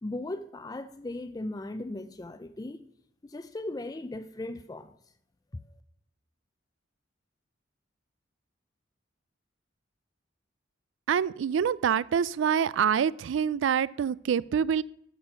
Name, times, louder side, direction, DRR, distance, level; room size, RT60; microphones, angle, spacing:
voice 1, 0.0-2.9 3.2-4.9 5.5-5.8, left 2 dB, 20° left, 0.4 m, -37 dB
voice 2, 11.1-14.8, right 7 dB, 80° right, 0.3 m, -26 dB
13.0 x 6.2 x 5.8 m
head